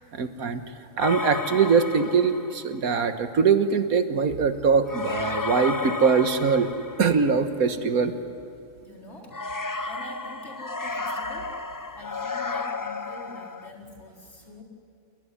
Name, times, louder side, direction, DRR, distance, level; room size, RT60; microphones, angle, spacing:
voice 1, 0.1-0.6 1.0-6.7 7.0-8.1, right 5 dB, 85° right, 9 dB, 1.8 m, -22 dB
sound 1, 1.0-2.7 4.8-7.4 9.3-13.7, left 4 dB, 25° left, 0.5 m, -32 dB
voice 2, 8.8-9.4 9.9-11.6 12.0-14.6, left 2 dB, 50° left, -1 dB, 4.5 m, -45 dB
28.5 x 20.5 x 10.0 m, 2.6 s
omnidirectional pair, 1.5 m